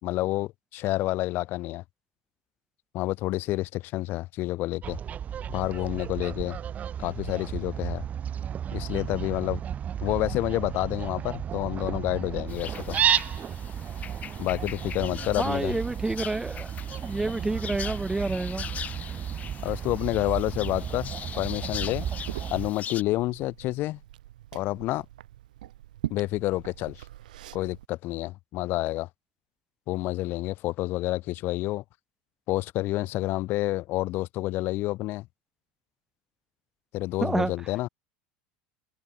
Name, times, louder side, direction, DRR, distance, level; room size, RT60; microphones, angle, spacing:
voice 1, 0.0-1.8 2.9-5.0 5.5-6.6 7.0-8.0 8.7-9.6 10.0-13.0 14.4-15.7 19.6-21.1 21.4-22.1 22.5-24.0 24.5-25.1 26.1-27.0 27.5-29.1 29.9-31.8 32.5-35.3 36.9-37.9, left 18 dB, 55° left, 1.8 m, -29 dB
Fowl, 4.8-22.7, right 9 dB, 35° right, 3.5 m, -33 dB
sound 1, 12.5-23.0, left 9 dB, 35° left, 4.3 m, -41 dB
voice 2, 15.4-16.7 17.0-18.7 37.2-37.7, right 2 dB, 10° right, 0.9 m, -29 dB
Liquid, 21.1-27.9, right 14 dB, 85° right, 2.8 m, -42 dB
hypercardioid pair, 95°, 4 cm